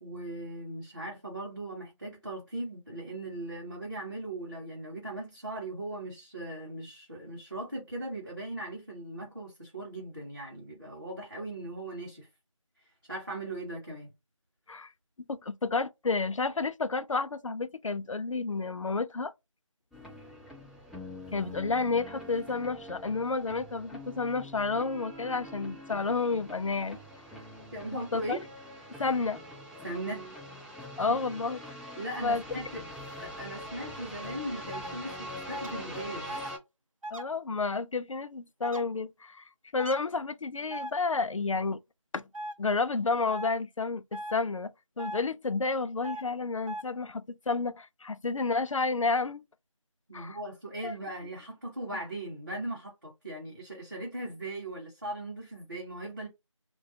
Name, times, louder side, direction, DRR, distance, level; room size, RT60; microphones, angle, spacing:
voice 1, 0.0-12.3 12.8-14.1 27.7-28.4 29.8-30.3 31.1-31.2 32.0-32.8 33.2-36.4 50.1-56.3, right 1 dB, 35° right, 0.8 m, -39 dB
voice 2, 15.3-19.3 21.3-27.0 27.9-28.4 28.9-29.4 31.0-31.6 32.2-32.4 37.1-41.8 42.1-42.3 42.6-44.7 45.0-49.4 50.1-50.4 50.8-50.9, left 4 dB, 70° left, 0.4 m, -31 dB
sound 1, 19.9-36.6, left 1 dB, ahead, 0.4 m, -44 dB
sound 2, 34.7-34.9 35.5-35.7 36.3-36.5 37.0-37.2 38.6-38.8 39.8-40.0 40.7-40.9 42.3-42.5 43.3-43.5 44.1-44.3 45.0-45.2 46.0-46.2 46.7-46.8, right 1 dB, 75° right, 0.5 m, -38 dB
2.9 x 2.2 x 2.6 m
figure-of-eight pair, 175°, 17 cm